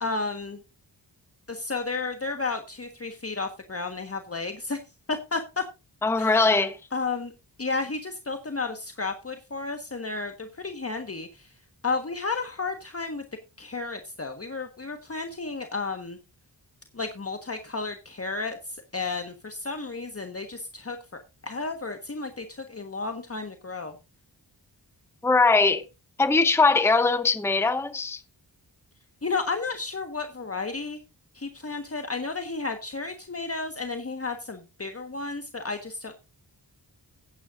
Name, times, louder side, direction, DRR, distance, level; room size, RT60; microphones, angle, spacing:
voice 1, 0.0-0.6 1.5-4.8 5.1-5.6 6.2-6.4 6.9-7.3 7.6-11.5 11.8-13.2 13.6-16.2 16.9-23.9 29.2-31.0 31.3-36.1, left 3 dB, 35° left, 1.4 m, -32 dB
voice 2, 6.0-6.8 25.2-25.8 26.2-28.2, left 3 dB, 5° left, 0.8 m, -21 dB
15.0 x 9.8 x 2.5 m
wide cardioid pair, 80°, 43 cm